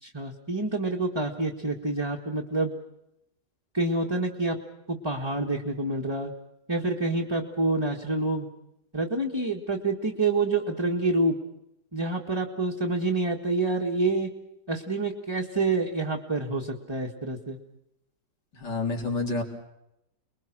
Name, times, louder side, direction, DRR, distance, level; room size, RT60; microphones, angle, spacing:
voice 1, 0.0-2.7 3.7-4.6 4.9-6.3 6.7-8.5 8.9-11.4 11.9-14.3 14.7-17.6, right 2 dB, 15° right, -1 dB, 1.6 m, -27 dB
voice 2, 18.5-19.4, left 3 dB, 75° left, 1 dB, 4.4 m, -28 dB
29.5 x 21.5 x 6.2 m, 0.84 s
omnidirectional pair, 1.9 m